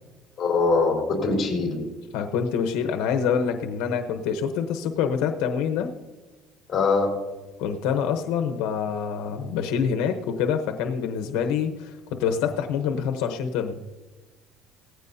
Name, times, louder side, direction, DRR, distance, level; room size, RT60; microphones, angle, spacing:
voice 1, 0.4-1.9 6.7-7.2, left 3 dB, 25° left, 1 dB, 3.6 m, -22 dB
voice 2, 2.1-5.9 7.6-13.8, left 7 dB, 85° left, 6 dB, 0.9 m, -26 dB
17.5 x 15.0 x 2.7 m, 1.2 s
cardioid pair, 165°, 0 cm